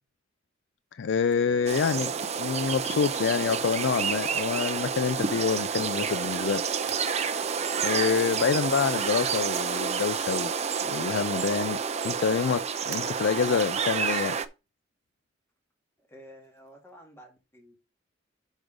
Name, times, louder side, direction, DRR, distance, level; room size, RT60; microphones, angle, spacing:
voice 1, 0.9-2.1 2.4-6.6 7.8-10.5 10.8-11.8 12.0-14.4, left 6 dB, 65° left, 0.4 m, -27 dB
sound 1, 0.9-1.0 1.2-1.4 1.8-3.0 3.3-3.9 4.4-4.8 6.9-7.1 9.0-9.4 9.9-10.8 11.3-11.4 12.9-13.2 14.3-14.4 16.4-16.9, right 9 dB, 55° right, 1.1 m, -49 dB
sound 2, 1.7-14.5, right 6 dB, 35° right, 0.6 m, -29 dB
voice 2, 16.0-17.8, equal, 15° left, 2.1 m, -51 dB
6.2 x 5.2 x 5.0 m
head